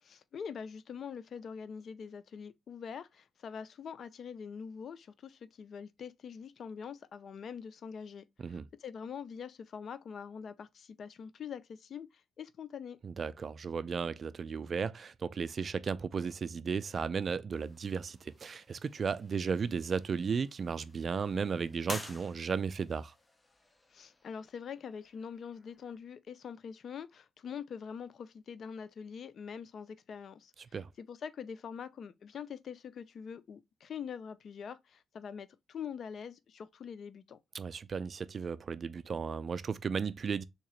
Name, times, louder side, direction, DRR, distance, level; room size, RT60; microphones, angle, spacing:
voice 1, 0.0-13.0 23.9-37.4, left 7 dB, 55° left, 0.4 m, -44 dB
voice 2, 13.0-23.1 30.7-30.9 37.5-40.4, right 5 dB, 45° right, 0.3 m, -35 dB
sound 1, 17.5-26.0, left 2 dB, 20° left, 0.7 m, -51 dB
3.6 x 2.9 x 3.0 m
cardioid pair, 90°, 0 cm